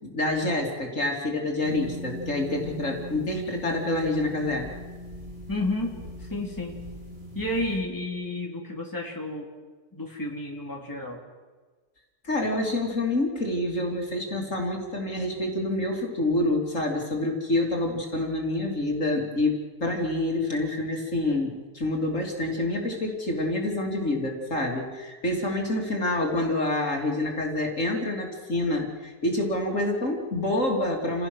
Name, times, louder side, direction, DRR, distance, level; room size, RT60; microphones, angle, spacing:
voice 1, 0.0-4.7 12.2-31.3, left 2 dB, 55° left, 1 dB, 3.3 m, -27 dB
sound 1, 1.6-7.8, equal, 70° right, 6.3 m, -40 dB
voice 2, 5.5-6.8 7.3-9.5 9.9-11.2, left 2 dB, 15° left, 0 dB, 2.8 m, -31 dB
29.5 x 17.0 x 6.3 m, 1.4 s
omnidirectional pair, 1.6 m